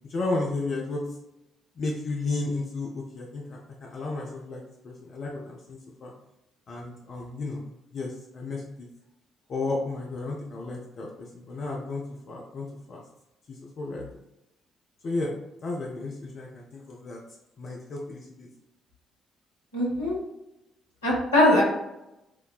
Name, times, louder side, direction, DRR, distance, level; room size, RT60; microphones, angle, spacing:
voice 1, 0.1-1.0 1.8-6.1 6.7-8.9 9.5-13.0 13.5-14.0 15.0-15.3 15.6-17.2 17.6-18.5, left 3 dB, 50° left, -1 dB, 0.5 m, -33 dB
voice 2, 19.7-20.2 21.0-21.6, left 1 dB, 85° left, -5 dB, 0.9 m, -21 dB
5.7 x 2.1 x 2.3 m, 0.90 s
figure-of-eight pair, 40°, 0 cm